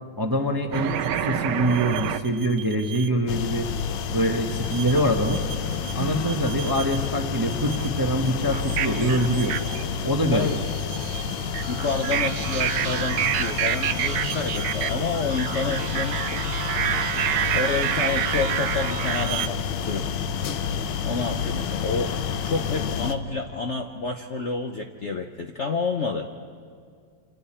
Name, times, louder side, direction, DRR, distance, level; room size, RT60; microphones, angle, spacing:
voice 1, 0.2-3.7 4.1-5.4 5.9-9.6 10.0-10.5, right 1 dB, 15° right, 3 dB, 0.8 m, -24 dB
sound 1, 0.7-3.1 4.6-5.9 6.2-7.1 7.5-19.5, right 10 dB, 70° right, 1.3 m, -29 dB
sound 2, 3.3-23.1, left 7 dB, 85° left, 1.7 m, -29 dB
Acoustic guitar / Strum, 6.0-11.9, left 1 dB, 20° left, 1.0 m, -41 dB
voice 2, 11.6-16.4 17.1-17.2 17.5-20.1 21.0-22.1 22.4-26.3, left 4 dB, 50° left, 3 dB, 0.8 m, -29 dB
28.5 x 27.0 x 4.4 m, 2.1 s
omnidirectional pair, 2.2 m